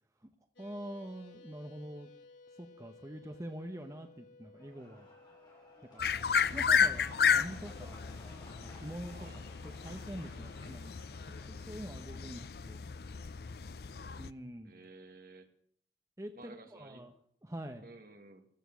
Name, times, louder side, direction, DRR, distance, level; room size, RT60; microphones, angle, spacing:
sound 1, 0.6-9.2, left 3 dB, 85° left, 2.7 m, -59 dB
voice 1, 0.6-2.1 2.6-5.1 5.9-6.0 6.5-8.0 8.6-11.2 11.5-12.8 13.1-13.3 14.2-14.7 16.2-17.1 17.4-17.8, right 1 dB, 20° right, 5 dB, 0.9 m, -45 dB
sound 2, 4.5-11.9, left 1 dB, 25° left, 6.8 m, -57 dB
sound 3, 6.0-14.3, left 6 dB, 60° left, 0.5 m, -33 dB
voice 2, 14.6-15.5 16.3-17.0 17.8-18.5, right 2 dB, 55° right, 5 dB, 2.0 m, -53 dB
15.0 x 13.5 x 6.2 m, 0.65 s
head